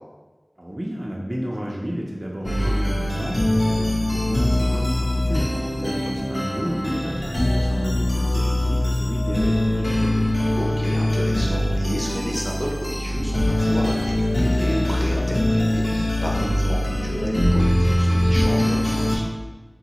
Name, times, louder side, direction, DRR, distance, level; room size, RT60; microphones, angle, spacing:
voice 1, 0.6-10.2, equal, 30° right, -3 dB, 0.4 m, -31 dB
sound 1, 2.4-19.2, left 1 dB, 80° left, 0.5 m, -22 dB
voice 2, 5.8-6.1 10.6-19.2, equal, 10° left, -3 dB, 0.7 m, -31 dB
3.8 x 2.0 x 2.8 m, 1.3 s
wide cardioid pair, 45°, 0 cm